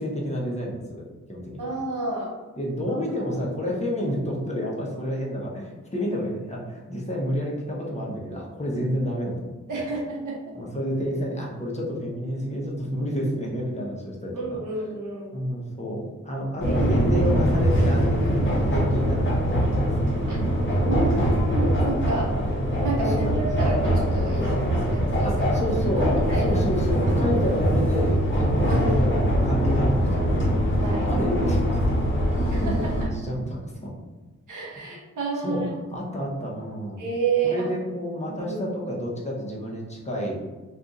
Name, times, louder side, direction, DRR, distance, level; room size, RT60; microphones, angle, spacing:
voice 1, 0.0-1.7 2.6-9.8 10.5-14.6 15.3-18.4 18.7-19.8 21.0-21.2 23.0-23.3 25.2-30.5 31.0-31.8 32.6-33.9 35.4-35.6 35.9-37.0 37.4-40.4, equal, 20° left, -3 dB, 0.9 m, -30 dB
voice 2, 1.6-2.3 2.9-3.8 9.7-10.5 14.3-15.4 16.6-17.1 20.3-20.4 20.8-22.3 22.8-26.6 27.2-27.3 28.6-29.1 30.8-31.1 32.5-33.1 34.5-35.7 37.0-37.7 38.3-38.6, right 3 dB, 85° right, -3 dB, 1.0 m, -30 dB
sound 1, 16.6-33.0, equal, 40° left, 1.2 m, -22 dB
2.5 x 2.4 x 4.0 m, 1.2 s
cardioid pair, 65°, 30 cm